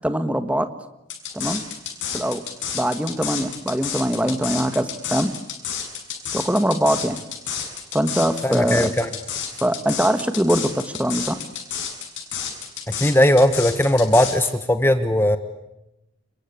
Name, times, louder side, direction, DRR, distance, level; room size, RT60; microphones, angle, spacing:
voice 1, 0.0-0.7 1.3-1.6 2.1-2.4 2.7-5.3 6.3-7.2 7.9-8.9 9.6-11.4, right 1 dB, 5° right, 9 dB, 1.5 m, -22 dB
sound 1, 1.1-14.5, left 8 dB, 60° left, 6.9 m, -30 dB
voice 2, 8.4-9.1 13.0-15.4, left 1 dB, 10° left, 9 dB, 1.1 m, -18 dB
29.0 x 23.0 x 8.6 m, 0.90 s
head